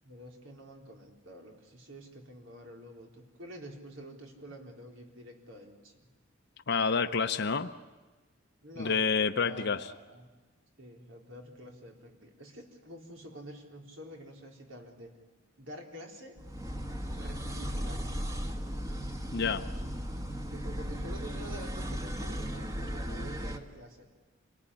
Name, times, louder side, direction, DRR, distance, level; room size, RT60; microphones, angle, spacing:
voice 1, 0.0-6.1 8.6-9.1 9.4-10.3 10.8-15.1 15.6-16.4 17.2-18.2 20.5-24.1, right 1 dB, 75° right, 2 dB, 4.0 m, -48 dB
voice 2, 6.7-7.7 8.8-9.9 19.3-19.6, left 5 dB, 60° left, 7 dB, 0.8 m, -28 dB
sound 1, 16.4-23.6, equal, 20° right, 1.5 m, -36 dB
27.0 x 18.5 x 9.9 m, 1.2 s
head